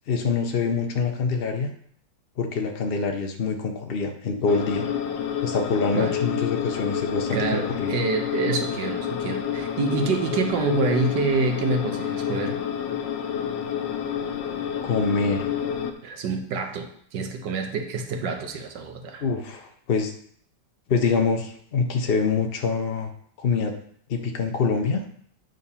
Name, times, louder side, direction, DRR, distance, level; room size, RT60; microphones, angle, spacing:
voice 1, 0.1-1.7 2.4-4.9 5.4-7.9 14.8-15.5 19.2-20.1 20.9-23.1 23.4-23.7 24.1-25.0, left 4 dB, 65° left, 4 dB, 0.5 m, -25 dB
sound 1, 4.5-15.9, left 8 dB, 90° left, 1.4 m, -29 dB
voice 2, 7.3-12.6 16.0-19.2, right 4 dB, 75° right, 5 dB, 1.5 m, -27 dB
9.1 x 3.9 x 5.5 m, 0.63 s
omnidirectional pair, 1.9 m